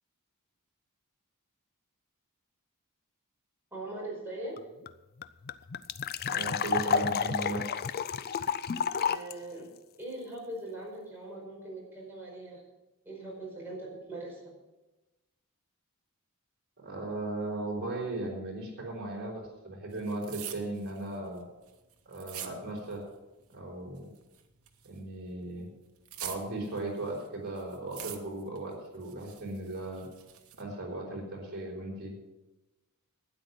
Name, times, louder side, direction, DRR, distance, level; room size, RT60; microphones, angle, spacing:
voice 1, 3.7-4.6 9.0-9.7 10.0-12.6 13.0-14.5, right 1 dB, 10° right, -3 dB, 4.9 m, -41 dB
sound 1, 4.6-4.7 4.8-4.9 5.2-9.3, left 7 dB, 45° left, 0.4 m, -30 dB
voice 2, 6.2-7.6 16.8-21.4 22.0-23.0 23.5-24.1 24.8-25.7 26.2-30.0 30.6-32.1, right 2 dB, 50° right, -2 dB, 4.6 m, -37 dB
sound 2, 19.9-23.1 23.4-25.1 25.4-27.3 27.6-28.6 28.9-30.6, right 11 dB, 70° right, 1.3 m, -45 dB
12.5 x 9.7 x 6.3 m, 1.0 s
head